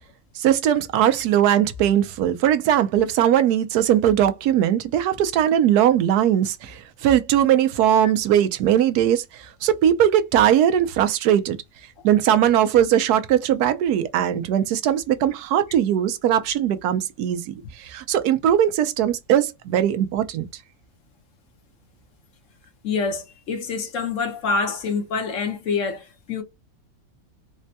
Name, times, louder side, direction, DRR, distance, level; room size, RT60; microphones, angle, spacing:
voice 1, 0.4-11.6 12.0-20.5, right 10 dB, 85° right, 1.2 m, -20 dB
voice 2, 22.8-26.4, left 4 dB, 60° left, 1.1 m, -26 dB
4.2 x 2.2 x 2.7 m
omnidirectional pair, 1.6 m